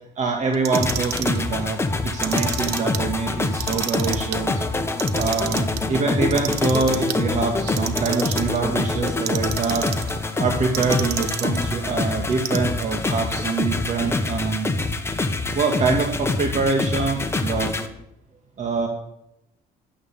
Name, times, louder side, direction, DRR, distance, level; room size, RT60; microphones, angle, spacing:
voice 1, 0.2-4.6 5.1-9.9 10.4-14.8 15.5-17.7 18.6-18.9, right 4 dB, 45° right, 3 dB, 2.0 m, -24 dB
Clock, 0.5-1.4 2.1-3.0 3.5-4.4 4.8-5.8 6.3-7.2 7.7-8.6 9.1-10.1 10.7-11.6 12.3-12.9, right 11 dB, 75° right, 1.2 m, -30 dB
sound 1, 0.7-17.9, left 2 dB, 15° left, 1.5 m, -25 dB
11.0 x 9.7 x 8.4 m, 0.83 s
cardioid pair, 110°, 17 cm